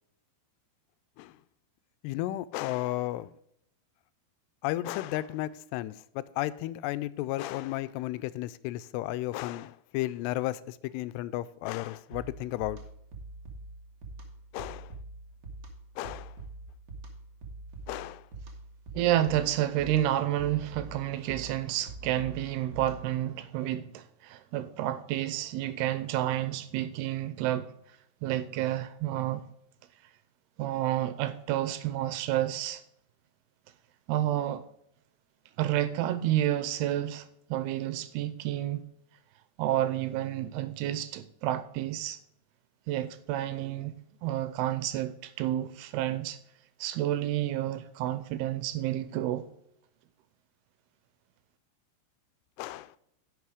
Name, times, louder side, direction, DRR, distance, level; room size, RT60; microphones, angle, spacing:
voice 1, 2.0-3.3 4.6-12.8 14.5-14.9 16.0-16.4 17.9-18.3 52.6-53.0, left 16 dB, 85° left, 2.6 m, -33 dB
sound 1, 12.1-23.2, right 2 dB, 50° right, 1.2 m, -45 dB
voice 2, 18.9-27.7 28.2-29.4 30.6-32.8 34.1-34.6 35.6-38.8 39.6-42.2 42.9-43.9 44.2-46.4 46.8-49.4, right 13 dB, 85° right, 2.6 m, -30 dB
10.5 x 6.1 x 4.8 m
omnidirectional pair, 4.8 m